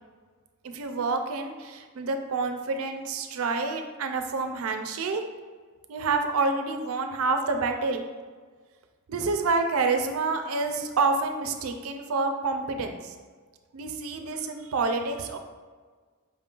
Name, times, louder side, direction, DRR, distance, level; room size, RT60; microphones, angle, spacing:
voice 1, 0.6-5.2 5.9-8.1 9.1-13.1 13.7-15.4, right 3 dB, 70° right, 6 dB, 0.4 m, -28 dB
5.1 x 3.7 x 2.4 m, 1.5 s
head